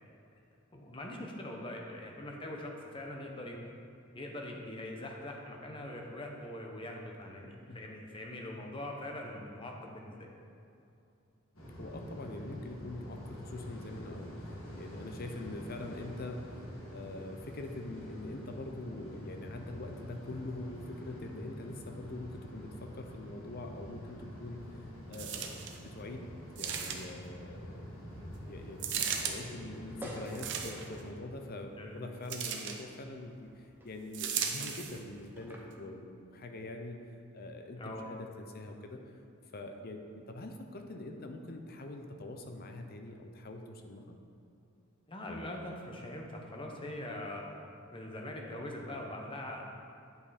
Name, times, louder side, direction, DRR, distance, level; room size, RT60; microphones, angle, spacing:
voice 1, 0.7-3.6 4.1-10.3 31.8-32.1 37.8-38.1 45.1-47.6 47.9-49.7, left 1 dB, 25° left, 0 dB, 0.9 m, -42 dB
sound 1, 11.5-31.1, equal, 80° left, 1.9 m, -47 dB
voice 2, 11.8-16.6 16.9-24.8 25.1-27.8 28.5-37.0 37.3-39.2 39.5-44.2, left 2 dB, 45° left, 5 dB, 0.7 m, -44 dB
sound 2, 25.1-25.8 26.6-27.3 28.8-29.4 30.3-31.0 32.3-32.8 34.1-35.0 35.7-35.8, right 7 dB, 55° right, 0.7 m, -36 dB
sound 3, 27.6-35.6, equal, 10° right, 0.9 m, -53 dB
9.3 x 5.5 x 4.2 m, 2.7 s
head